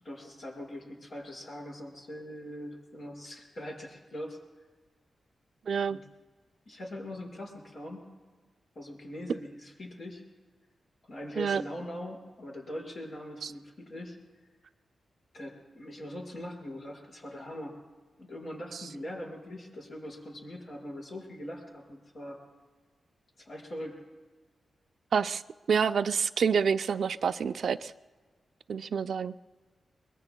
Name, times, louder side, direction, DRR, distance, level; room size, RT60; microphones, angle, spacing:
voice 1, 0.0-4.4 5.9-6.0 6.6-8.1 8.7-10.2 11.1-14.2 15.3-17.8 18.2-22.4 23.4-24.0, left 1 dB, 55° left, -3 dB, 5.0 m, -42 dB
voice 2, 5.7-6.0 11.4-11.6 13.4-13.5 25.1-25.4 25.7-27.9 28.7-29.3, right 6 dB, 70° right, 12 dB, 0.4 m, -27 dB
24.0 x 22.0 x 2.3 m, 1.4 s
wide cardioid pair, 125°, 0 cm